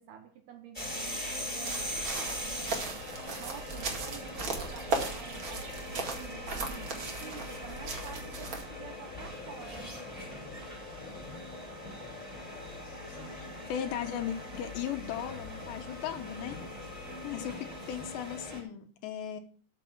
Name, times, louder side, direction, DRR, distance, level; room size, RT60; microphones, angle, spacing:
voice 1, 0.0-10.1, right 8 dB, 75° right, 2.6 m, -49 dB
sound 1, 0.7-18.6, left 1 dB, ahead, 5.3 m, -41 dB
sound 2, 1.6-8.7, right 3 dB, 50° right, 1.5 m, -37 dB
voice 2, 12.9-16.6 17.2-19.4, left 10 dB, 75° left, 3.0 m, -37 dB
13.0 x 7.3 x 6.0 m
omnidirectional pair, 5.4 m